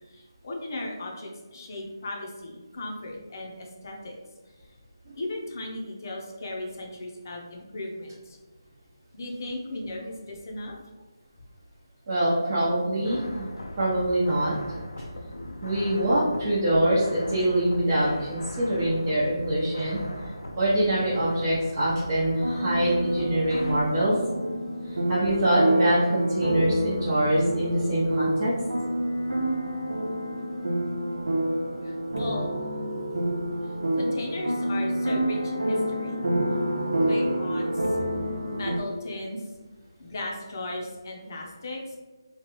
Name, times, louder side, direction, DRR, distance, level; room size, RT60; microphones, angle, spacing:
voice 1, 0.1-4.2 5.2-8.4 9.1-10.9 31.8-32.5 33.6-36.2 37.0-38.0 38.5-39.5 40.0-42.0, left 1 dB, 45° left, -1 dB, 0.7 m, -36 dB
voice 2, 12.1-13.5 13.8-14.6 15.6-20.0 20.6-24.2 24.9-28.6, right 1 dB, 40° right, -9 dB, 0.8 m, -24 dB
sound 1, 13.0-23.8, left 1 dB, 85° left, 0.5 m, -40 dB
sound 2, 22.2-38.8, right 1 dB, 90° right, 0.6 m, -28 dB
3.0 x 2.3 x 3.0 m, 1.3 s
figure-of-eight pair, 160°, 2 cm